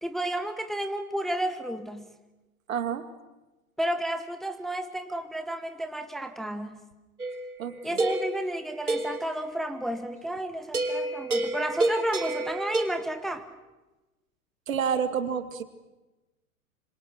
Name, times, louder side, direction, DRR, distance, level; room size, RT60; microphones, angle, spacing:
voice 1, 0.0-2.1 3.8-6.8 7.8-13.4, right 1 dB, ahead, 8 dB, 1.1 m, -32 dB
voice 2, 2.7-3.1 7.6-8.0 14.7-15.6, right 7 dB, 65° right, 10 dB, 2.3 m, -29 dB
sound 1, 7.2-9.3 10.7-12.9, right 2 dB, 85° right, 3.1 m, -29 dB
27.0 x 26.0 x 6.3 m, 1.1 s
figure-of-eight pair, 110°, 43 cm